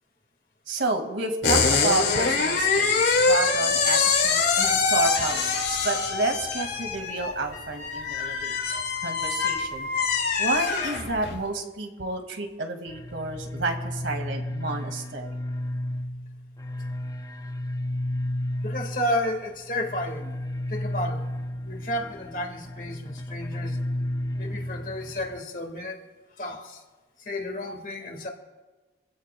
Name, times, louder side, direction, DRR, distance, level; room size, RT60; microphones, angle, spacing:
voice 1, 0.7-9.9 10.4-15.3, right 2 dB, 90° right, 4 dB, 2.0 m, -30 dB
sound 1, 1.4-11.4, left 4 dB, 85° left, 3.2 m, -24 dB
sound 2, 12.9-25.4, left 1 dB, 20° left, 0.5 m, -33 dB
voice 2, 18.6-20.3 20.7-21.3 21.7-23.8 24.4-26.0 26.4-26.8 27.2-28.3, left 1 dB, 45° left, 3 dB, 1.8 m, -32 dB
25.5 x 16.0 x 2.3 m, 1.2 s
head